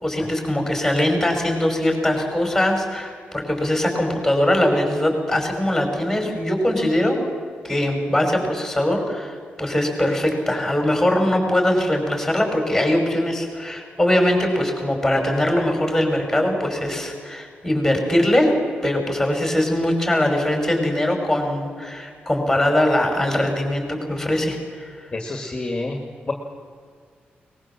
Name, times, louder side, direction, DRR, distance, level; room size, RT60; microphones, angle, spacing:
voice 1, 0.0-7.2 7.6-18.6 18.8-24.9, left 1 dB, 5° left, 2 dB, 5.3 m, -21 dB
voice 2, 25.1-26.0 26.3-26.4, left 2 dB, 20° left, 2 dB, 2.2 m, -28 dB
22.5 x 20.5 x 7.4 m, 2.1 s
wide cardioid pair, 145°, 4 cm